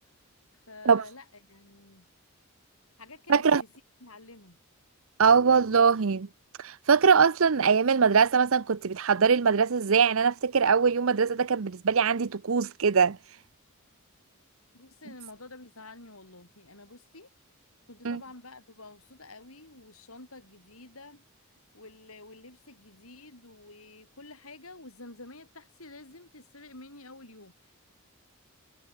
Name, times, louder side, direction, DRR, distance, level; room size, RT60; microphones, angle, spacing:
voice 1, 0.7-2.1 3.0-3.7 4.0-4.6 14.7-17.3 17.9-21.2 21.7-27.8, left 2 dB, 70° left, 7.9 m, -49 dB
voice 2, 3.3-3.6 5.2-6.3 6.6-13.2 18.0-18.2, right 6 dB, 65° right, 0.6 m, -22 dB
head